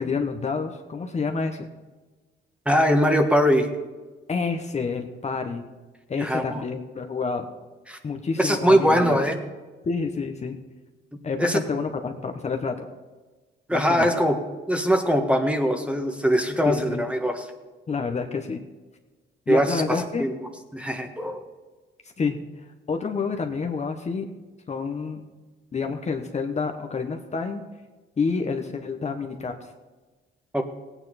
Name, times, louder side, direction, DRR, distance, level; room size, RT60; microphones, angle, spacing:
voice 1, 0.0-1.7 4.3-5.7 6.1-7.5 8.0-9.2 9.8-10.6 11.2-12.9 13.7-14.1 16.7-17.1 17.9-18.6 19.5-20.2 22.2-22.4 22.9-24.3 24.7-25.2 25.7-27.6 28.2-29.7, left 5 dB, 35° left, 5 dB, 1.0 m, -28 dB
voice 2, 2.6-3.7 6.2-6.6 7.9-8.0 8.4-9.4 11.4-11.6 13.7-14.4 14.7-17.5 19.5-20.3 20.7-21.4 30.5-30.6, equal, 5° right, 5 dB, 1.4 m, -21 dB
17.0 x 9.1 x 4.2 m, 1.3 s
cardioid pair, 90°, 20 cm